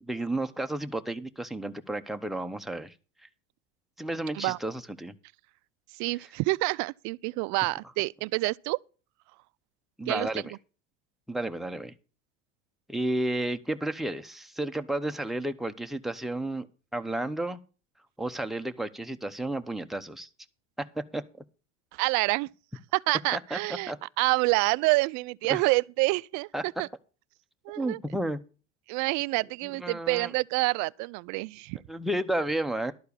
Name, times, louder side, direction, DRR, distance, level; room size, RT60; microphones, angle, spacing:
voice 1, 0.0-2.9 4.0-5.1 10.0-10.5 11.3-11.9 12.9-16.7 16.9-17.6 18.2-20.3 20.8-21.2 23.3-23.6 23.9-24.0 25.5-25.6 26.5-26.6 27.8-28.4 29.7-30.3 31.9-32.9, right 1 dB, ahead, 0.9 m, -32 dB
voice 2, 5.9-8.8 10.1-10.3 21.9-22.5 22.9-26.9 27.6-28.0 28.9-31.8, right 25 dB, 55° right, 0.4 m, -27 dB
12.0 x 4.5 x 8.5 m
hypercardioid pair, 90°, 35 cm